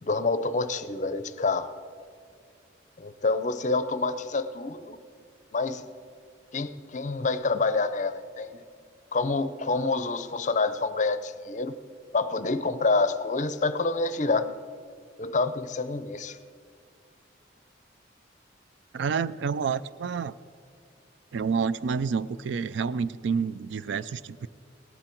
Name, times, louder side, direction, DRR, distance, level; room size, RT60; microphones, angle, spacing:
voice 1, 0.0-1.7 3.0-5.0 5.5-5.8 6.5-8.6 9.1-11.8 12.1-14.5 15.2-16.4, left 3 dB, 40° left, 12 dB, 0.5 m, -27 dB
voice 2, 18.9-20.3 21.3-24.5, right 5 dB, 70° right, 16 dB, 0.4 m, -29 dB
17.5 x 11.5 x 4.5 m, 2.3 s
head